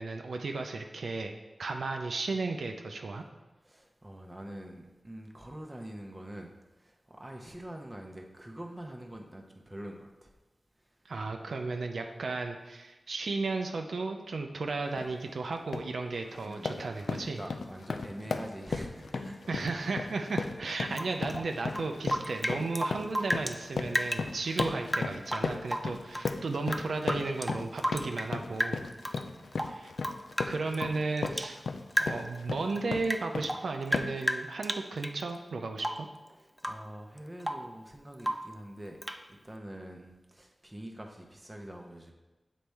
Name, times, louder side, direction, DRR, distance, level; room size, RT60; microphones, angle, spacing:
voice 1, 0.0-3.2 11.1-17.4 19.5-28.8 29.7-29.9 30.5-31.6 32.0-36.1, right 3 dB, 80° right, 4 dB, 0.5 m, -34 dB
voice 2, 3.6-10.3 16.4-16.7 17.3-19.7 29.2-29.6 36.4-39.0 39.3-42.1, right 1 dB, 20° right, 1 dB, 0.7 m, -45 dB
sound 1, 14.9-15.1 15.5-15.9 16.3-33.6 33.9-34.3, left 4 dB, 90° left, 0.4 m, -36 dB
Rain / Drip, 20.9-23.6 23.9-26.3 26.7-28.3 28.6-29.2 29.5-31.6 31.9-32.4 32.7-35.2 35.8-36.1 36.6-36.9 37.2-37.7 38.2-38.6 39.0-39.2, equal, ahead, 0.3 m, -34 dB
7.7 x 4.1 x 3.4 m, 1.1 s
wide cardioid pair, 105°, 0 cm